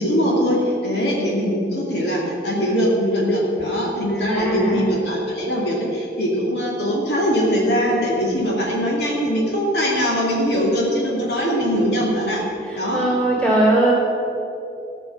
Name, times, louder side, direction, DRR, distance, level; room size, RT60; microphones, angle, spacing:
voice 1, 0.0-12.4 12.7-13.0, equal, 70° left, -3 dB, 2.6 m, -21 dB
voice 2, 4.3-4.8 12.9-13.9, right 1 dB, 5° left, -7 dB, 3.3 m, -19 dB
17.0 x 5.9 x 6.6 m, 2.8 s
head